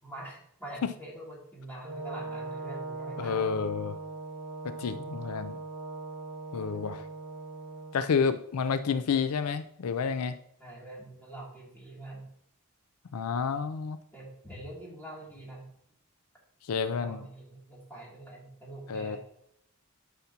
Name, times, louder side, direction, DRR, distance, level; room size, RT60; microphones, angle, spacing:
voice 1, 0.0-3.6 6.6-7.0 10.6-12.3 14.1-15.7 16.9-19.2, right 1 dB, 10° left, -5 dB, 2.8 m, -45 dB
Brass instrument, 1.8-8.0, right 3 dB, 25° right, 2.3 m, -40 dB
voice 2, 3.2-3.9 4.6-5.6 6.5-7.0 7.9-10.4 13.1-14.0 16.7-17.2 18.9-19.2, left 6 dB, 85° left, 12 dB, 0.5 m, -30 dB
11.5 x 5.8 x 2.9 m, 0.72 s
head